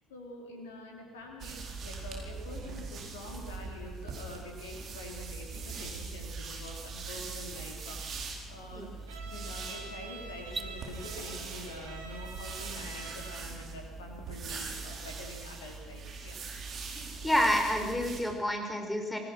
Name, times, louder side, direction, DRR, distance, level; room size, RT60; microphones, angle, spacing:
voice 1, 0.1-8.9 9.2-16.4, left 1 dB, 75° left, 1 dB, 3.6 m, -46 dB
sound 1, 1.4-18.2, right 4 dB, 45° right, 4.4 m, -41 dB
sound 2, 6.6-6.7 8.4-8.5 9.0-9.3 10.4-10.7, right 3 dB, 20° right, 1.6 m, -42 dB
Bowed string instrument, 9.1-13.6, right 4 dB, 70° right, 3.2 m, -47 dB
voice 2, 16.9-19.2, equal, 10° left, 4 dB, 5.1 m, -29 dB
27.0 x 18.5 x 6.3 m, 1.3 s
figure-of-eight pair, 55°, 0 cm